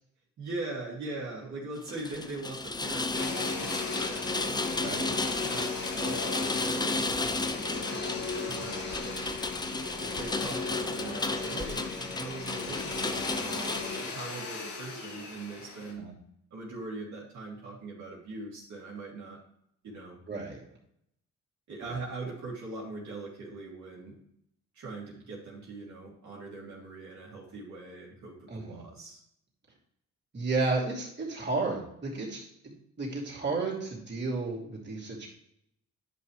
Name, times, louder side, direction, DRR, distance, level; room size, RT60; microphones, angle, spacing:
voice 1, 0.4-9.3 10.0-16.1 16.5-19.4 19.8-20.2 21.7-24.2 24.7-29.2, right 3 dB, 70° right, -4 dB, 2.5 m, -41 dB
Rain, 1.8-14.2, left 3 dB, 15° left, 0.5 m, -33 dB
Domestic sounds home sounds, 3.1-15.9, left 4 dB, 80° left, 2.3 m, -38 dB
voice 2, 4.8-5.1 16.0-16.1 20.3-20.6 21.8-22.1 28.5-28.8 30.3-32.5 33.0-35.3, right 3 dB, 35° right, -4 dB, 2.9 m, -32 dB
10.5 x 5.7 x 3.2 m, 0.73 s
cardioid pair, 90°, 30 cm